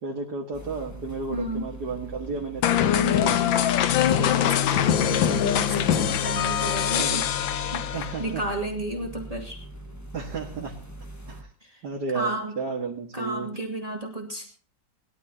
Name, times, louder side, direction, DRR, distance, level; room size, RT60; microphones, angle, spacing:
voice 1, 0.0-3.5 7.0-7.2 7.9-8.4 10.1-10.7 11.3-11.5 11.8-12.3 12.6-13.5, right 4 dB, 55° right, -1 dB, 2.2 m, -33 dB
sound 1, 0.5-11.4, right 1 dB, 10° left, 1.1 m, -42 dB
voice 2, 1.3-1.7 3.9-7.2 7.7-9.6 11.6-11.8 12.1-12.6 13.1-14.5, right 2 dB, 20° right, 0 dB, 2.3 m, -32 dB
sound 2, 2.6-8.3, left 10 dB, 75° left, 1.5 m, -23 dB
20.5 x 13.0 x 2.9 m, 0.43 s
omnidirectional pair, 2.2 m